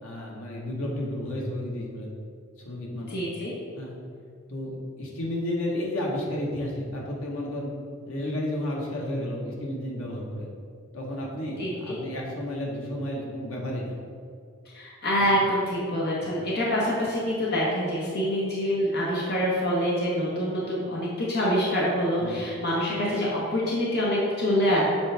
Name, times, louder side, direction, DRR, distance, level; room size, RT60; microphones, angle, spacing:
voice 1, 0.0-2.1 2.6-3.2 3.8-4.0 4.5-7.7 8.1-10.5 10.9-14.0 15.2-15.3 16.2-16.3 22.2-22.4, left 1 dB, 80° left, -2 dB, 1.2 m, -32 dB
voice 2, 3.1-3.5 11.6-12.0 14.7-24.8, equal, 50° left, -6 dB, 1.1 m, -26 dB
7.3 x 4.6 x 3.4 m, 2.3 s
head